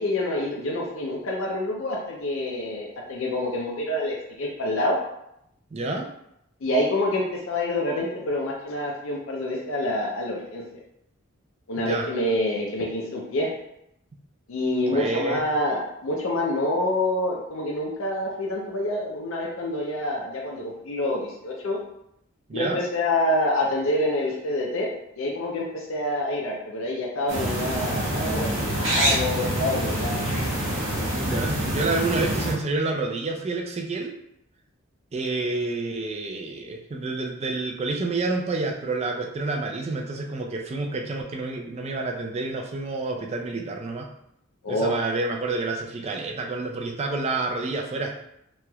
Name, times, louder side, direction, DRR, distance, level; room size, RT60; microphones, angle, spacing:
voice 1, 0.0-5.0 6.6-10.6 11.7-13.5 14.5-21.8 22.5-24.9 25.2-30.5 44.6-44.9, left 1 dB, 65° left, -2 dB, 0.5 m, -27 dB
voice 2, 5.7-6.1 11.8-12.1 14.9-15.4 22.5-22.8 31.2-34.1 35.1-44.1 44.7-48.1, right 3 dB, 30° right, 2 dB, 0.3 m, -28 dB
sound 1, 27.3-32.5, right 1 dB, 65° right, 0.8 m, -26 dB
3.0 x 2.9 x 2.3 m, 0.78 s
head